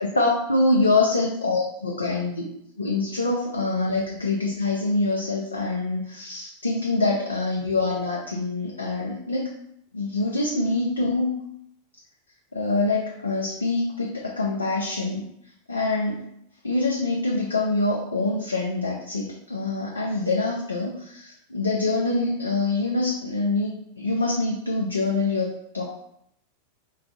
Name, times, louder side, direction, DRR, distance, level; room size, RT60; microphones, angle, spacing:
voice 1, 0.2-2.4 2.8-9.5 9.9-11.4 12.5-15.3 15.7-16.3 16.6-25.8, left 2 dB, 80° left, -2 dB, 0.4 m, -25 dB
2.3 x 2.3 x 3.7 m, 0.74 s
figure-of-eight pair, 90°, 0 cm